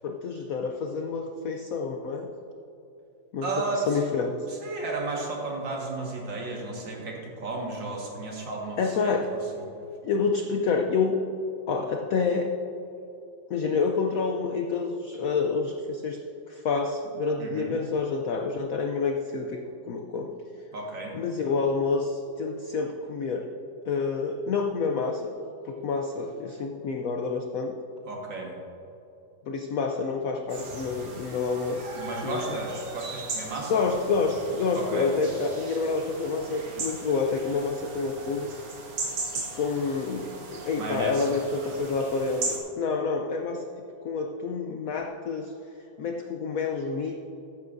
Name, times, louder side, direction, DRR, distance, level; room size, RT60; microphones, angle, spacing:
voice 1, 0.0-2.3 3.3-4.3 8.8-9.3 10.0-11.2 11.7-12.5 13.5-16.2 16.5-19.6 19.9-20.3 21.1-23.5 23.9-25.3 25.6-27.7 29.5-32.0 32.2-32.4 33.7-38.5 39.5-43.6 44.0-45.5 46.0-47.2, left 4 dB, 80° left, 4 dB, 0.7 m, -28 dB
voice 2, 3.4-4.0 4.5-9.6 17.4-17.7 20.7-21.2 28.0-28.6 31.9-33.8 34.7-35.1 40.8-41.3, right 3 dB, 65° right, -1 dB, 2.3 m, -33 dB
sound 1, 30.5-42.6, right 3 dB, 85° right, 2.4 m, -38 dB
14.0 x 9.8 x 2.6 m, 2.9 s
omnidirectional pair, 2.2 m